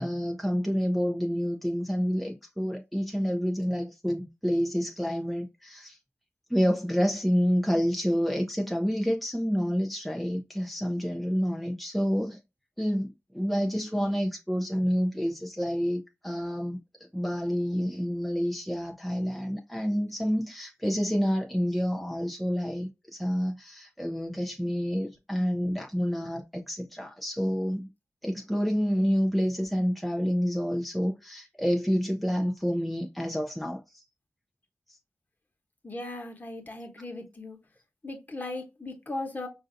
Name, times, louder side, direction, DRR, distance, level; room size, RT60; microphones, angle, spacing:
voice 1, 0.0-6.0 6.5-12.4 12.8-16.8 17.1-27.9 28.2-34.0, equal, ahead, 0.6 m, -28 dB
voice 2, 35.8-37.6 38.0-39.5, left 2 dB, 35° left, 1.1 m, -37 dB
5.4 x 2.6 x 2.6 m
wide cardioid pair, 85°, 5 cm